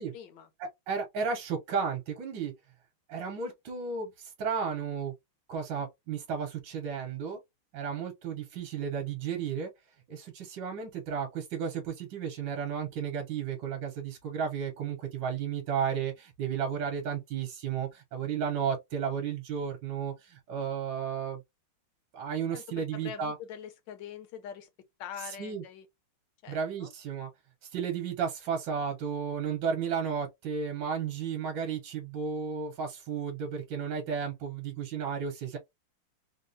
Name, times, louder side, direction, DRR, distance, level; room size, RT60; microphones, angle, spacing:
voice 1, 0.0-0.5 22.5-24.7 25.0-25.9 26.4-26.9, left 8 dB, 70° left, 1.2 m, -44 dB
voice 2, 0.6-2.5 3.1-5.1 5.5-7.4 7.7-9.7 10.1-21.4 22.1-23.3 25.2-25.6 26.5-27.3 27.7-35.6, right 6 dB, 65° right, 1.4 m, -33 dB
3.6 x 2.3 x 2.6 m
omnidirectional pair, 2.3 m